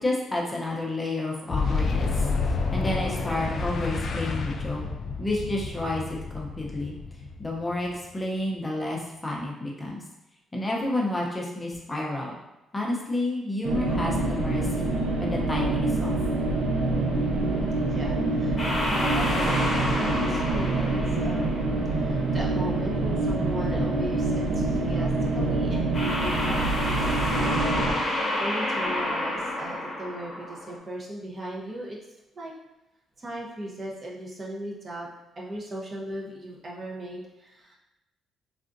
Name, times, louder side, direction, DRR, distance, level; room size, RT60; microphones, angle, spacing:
voice 1, 0.0-4.8 5.2-6.9 7.4-10.0 10.5-12.4 12.7-14.9 15.2-16.2, left 1 dB, 20° left, -2 dB, 0.6 m, -30 dB
Boom, 1.5-8.1, left 4 dB, 55° left, 0.3 m, -29 dB
sound 1, 13.6-27.9, right 2 dB, 85° right, 0.5 m, -26 dB
voice 2, 17.4-21.5 21.9-27.9 28.4-32.0 32.3-32.5 33.2-35.1 35.4-37.7, right 1 dB, 35° right, -3 dB, 0.7 m, -38 dB
sound 2, 18.6-21.9 25.9-30.8, left 1 dB, 40° left, 1.0 m, -29 dB
3.6 x 2.4 x 2.5 m, 0.96 s
cardioid pair, 90°, 0 cm